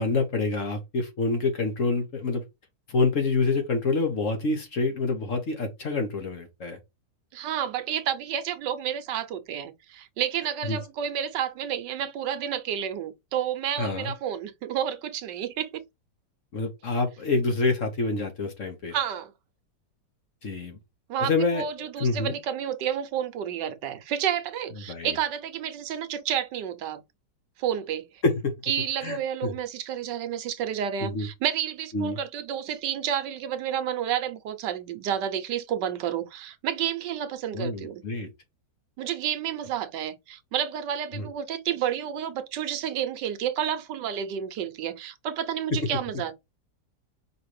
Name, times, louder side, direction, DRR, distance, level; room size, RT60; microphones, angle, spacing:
voice 1, 0.0-2.4 2.9-6.8 10.7-10.8 13.8-14.1 16.5-18.9 20.4-20.8 21.2-21.6 22.0-22.4 24.9-25.1 28.2-28.5 29.0-29.5 31.0-31.3 31.9-32.2 37.5-38.3 41.1-41.3, left 3 dB, 50° left, 1.4 m, -27 dB
voice 2, 7.3-15.8 18.9-19.3 21.1-27.0 27.6-28.1 28.7-38.0 39.0-46.3, right 9 dB, 75° right, 1.3 m, -30 dB
4.9 x 3.2 x 3.1 m
omnidirectional pair, 2.0 m